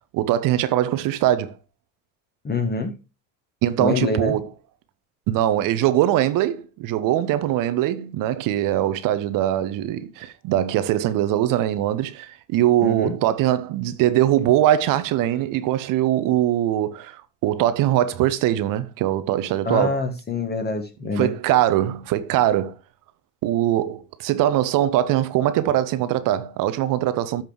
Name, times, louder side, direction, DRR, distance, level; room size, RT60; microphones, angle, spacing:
voice 1, 0.1-1.5 3.6-4.5 5.3-20.0 21.1-22.7 23.4-27.4, right 12 dB, 40° right, 1.0 m, -22 dB
voice 2, 2.4-2.9 3.8-4.3 12.8-13.1 19.6-21.3, left 3 dB, 20° left, 1.6 m, -25 dB
13.0 x 5.2 x 3.2 m
figure-of-eight pair, 65°, 49 cm